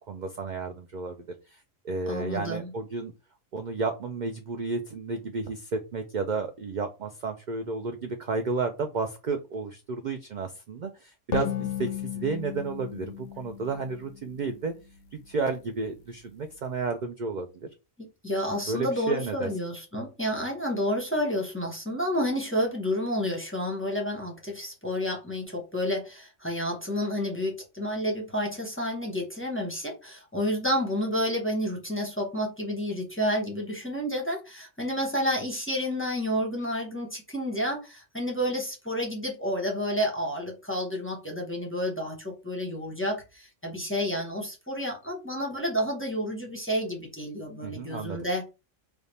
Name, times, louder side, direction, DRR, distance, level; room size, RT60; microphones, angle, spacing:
voice 1, 0.1-1.2 1.5-3.1 3.5-11.5 11.8-14.7 15.1-17.7 18.6-19.5 47.6-48.3, right 4 dB, 65° right, 0.4 m, -32 dB
voice 2, 2.1-2.7 11.4-11.5 18.0-48.5, equal, 10° left, 0.8 m, -30 dB
sound 1, 11.3-14.8, left 11 dB, 60° left, 0.6 m, -35 dB
3.4 x 2.4 x 4.1 m
omnidirectional pair, 1.4 m